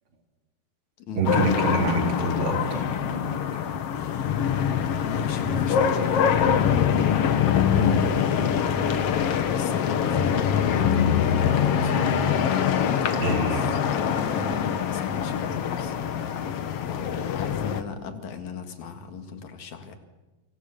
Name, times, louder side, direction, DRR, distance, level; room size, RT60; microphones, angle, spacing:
voice 1, 1.1-3.6 13.2-13.6, right 3 dB, 45° right, 3 dB, 4.0 m, -27 dB
sound 1, 1.2-17.8, left 8 dB, 60° left, 2.1 m, -24 dB
voice 2, 5.0-7.0 7.8-9.0 9.5-12.2 12.9-13.4 13.9-15.9 16.8-20.0, left 4 dB, 75° left, 7 dB, 3.3 m, -36 dB
28.5 x 25.0 x 6.9 m, 1.1 s
omnidirectional pair, 3.3 m